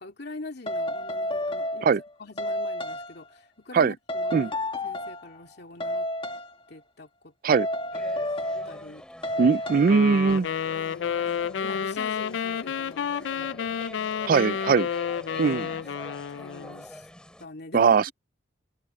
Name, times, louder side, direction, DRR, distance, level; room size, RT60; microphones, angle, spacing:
voice 1, 0.0-1.9 2.2-6.1 6.7-7.6 8.7-9.0 10.7-13.6 14.3-14.4 16.4-17.1 17.4-17.9, left 2 dB, 60° left, 2.7 m, -44 dB
sound 1, 0.7-2.1 2.4-3.3 4.1-5.3 5.8-6.5 7.5-8.9 9.2-9.9, left 1 dB, 30° left, 1.7 m, -30 dB
sound 2, 7.9-17.5, equal, 5° left, 5.0 m, -46 dB
voice 2, 9.4-10.5 14.3-14.9 15.4-15.7 17.7-18.1, right 5 dB, 50° right, 0.4 m, -20 dB
sound 3, 9.9-16.8, left 7 dB, 80° left, 0.4 m, -30 dB
head